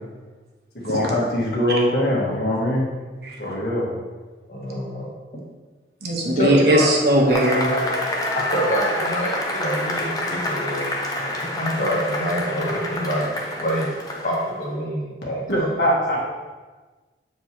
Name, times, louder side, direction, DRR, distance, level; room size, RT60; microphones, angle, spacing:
voice 1, 0.8-2.9 3.4-3.9 15.5-16.3, equal, 80° left, -5 dB, 1.6 m, -22 dB
voice 2, 4.5-5.1 6.4-6.9 8.3-10.9 11.5-13.9 14.2-15.9, equal, 45° left, -5 dB, 1.7 m, -26 dB
voice 3, 6.0-7.7, right 1 dB, 60° right, -2 dB, 1.2 m, -18 dB
Cheering / Applause / Crowd, 7.3-14.5, left 1 dB, 20° left, 0.7 m, -27 dB
7.8 x 4.5 x 3.0 m, 1.3 s
head